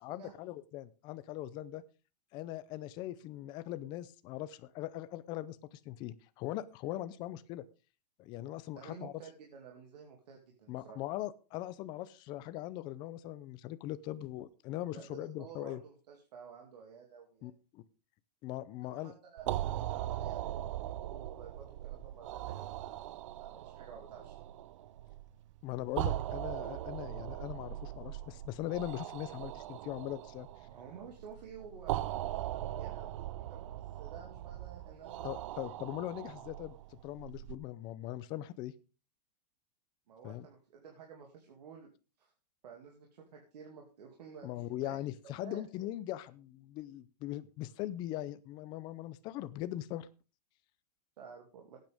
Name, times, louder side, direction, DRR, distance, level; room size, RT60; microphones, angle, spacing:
voice 1, 0.0-1.8 2.3-7.6 8.2-9.1 10.7-15.8 17.4-17.8 18.4-19.1 25.6-30.5 35.2-38.7 40.2-40.5 44.4-50.1, left 14 dB, 20° left, 14 dB, 0.5 m, -40 dB
voice 2, 8.7-11.0 14.9-17.5 18.8-23.1 23.3-24.5 30.7-33.7 34.0-35.8 40.1-41.9 42.2-42.3 42.6-45.0 45.4-45.6 51.2-51.8, right 6 dB, 80° right, 1 dB, 2.5 m, -52 dB
sound 1, 19.4-37.5, right 13 dB, 50° right, 0.5 m, -40 dB
17.0 x 9.1 x 3.5 m, 0.33 s
supercardioid pair, 170°, 21 cm